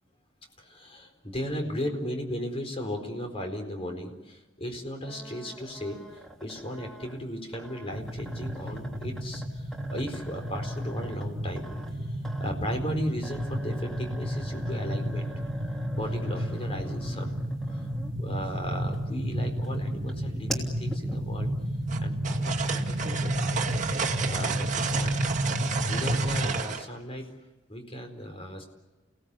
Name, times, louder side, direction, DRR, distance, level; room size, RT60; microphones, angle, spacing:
voice 1, 0.6-15.3 15.9-17.3 17.7-17.9 18.2-21.5 22.0-23.3 24.2-25.2 25.9-27.3 27.7-28.7, equal, 30° left, 4 dB, 4.3 m, -36 dB
sound 1, 5.1-18.4 18.8-21.6, right 1 dB, ahead, 3.1 m, -44 dB
sound 2, 7.9-26.6, equal, 90° right, 1.8 m, -31 dB
sound 3, 21.9-26.8, right 6 dB, 40° right, 1.8 m, -32 dB
29.5 x 18.0 x 8.3 m, 1.1 s
head